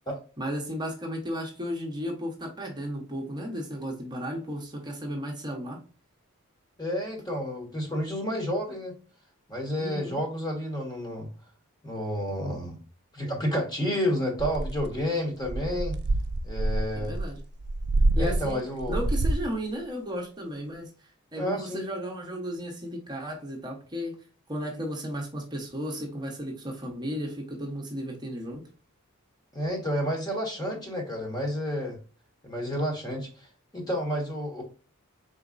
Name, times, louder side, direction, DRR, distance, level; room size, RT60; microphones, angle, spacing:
voice 1, 0.4-5.8 9.8-10.2 17.0-17.4 18.2-18.6 18.9-24.2 24.5-28.6, equal, 20° right, 0 dB, 0.9 m, -34 dB
voice 2, 6.8-8.9 9.5-11.3 11.8-12.8 13.1-15.9 16.4-17.2 18.1-19.0 21.3-21.8 29.5-32.0 32.4-33.5 33.7-34.6, equal, 20° left, 1 dB, 1.3 m, -30 dB
sound 1, 14.4-15.0 15.4-19.5, right 2 dB, 55° right, 0.5 m, -27 dB
4.1 x 4.0 x 2.5 m, 0.36 s
head